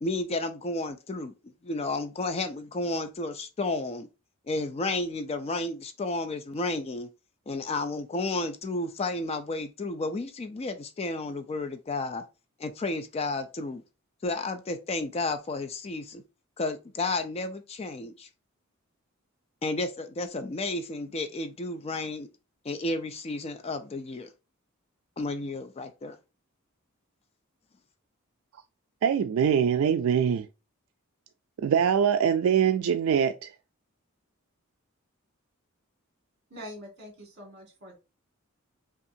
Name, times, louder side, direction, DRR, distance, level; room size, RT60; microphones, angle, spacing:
voice 1, 0.0-1.3 1.6-4.1 4.5-7.1 7.5-12.2 12.6-13.8 14.2-16.2 16.6-18.3 19.6-22.3 22.6-24.3 25.2-26.2, left 2 dB, 30° left, 0.3 m, -32 dB
voice 2, 29.0-30.5 31.6-33.5, right 8 dB, 70° right, 0.3 m, -23 dB
voice 3, 36.5-37.9, equal, 50° right, 1.8 m, -44 dB
5.4 x 2.4 x 2.6 m
head